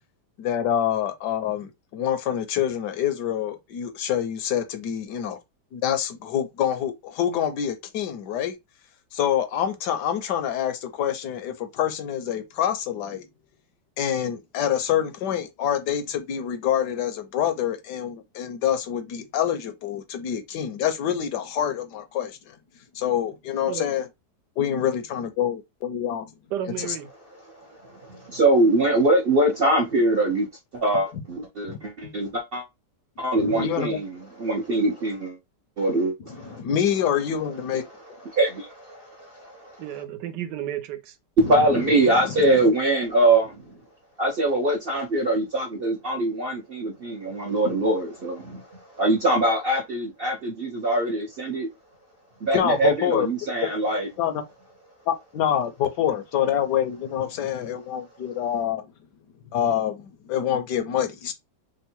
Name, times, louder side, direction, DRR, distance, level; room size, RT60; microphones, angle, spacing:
voice 1, 0.4-5.4 5.7-8.6 9.1-13.3 14.0-22.6 22.9-24.0 24.6-26.3 26.8-27.0 31.7-32.1 33.4-34.0 36.4-37.8 41.4-42.6 52.5-53.3 53.6-53.7 54.2-54.4 55.1-58.9 59.5-61.3, left 9 dB, 80° left, 1.3 m, -26 dB
voice 2, 26.5-27.1 39.8-41.2, right 10 dB, 80° right, 1.3 m, -32 dB
voice 3, 27.5-30.5 30.7-32.6 33.2-35.4 35.8-36.6 38.2-39.8 41.4-43.7 44.2-51.7 52.4-54.1, right 1 dB, 55° right, 0.6 m, -23 dB
3.6 x 2.1 x 4.3 m
omnidirectional pair, 1.9 m